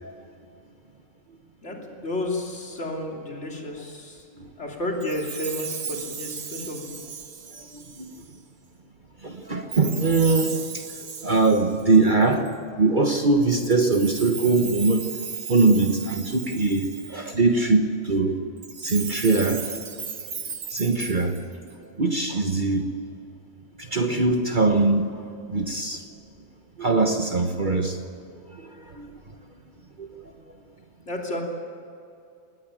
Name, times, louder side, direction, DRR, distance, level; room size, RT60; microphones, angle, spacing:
voice 1, 1.6-4.2 4.6-6.8 31.1-31.4, left 1 dB, 55° left, 0 dB, 3.4 m, -31 dB
Chime, 5.0-8.3 9.7-12.5 13.5-17.3 18.6-21.7, right 6 dB, 85° right, 1.9 m, -36 dB
voice 2, 7.6-8.1 9.2-10.8 11.2-12.4 12.8-15.1 15.5-18.5 18.8-19.8 20.7-21.4 22.0-22.9 23.8-25.1 25.5-26.0 26.8-28.0 28.6-29.2 30.0-30.1, right 3 dB, 35° right, 5 dB, 1.3 m, -22 dB
20.5 x 17.5 x 9.0 m, 2.5 s
omnidirectional pair, 1.5 m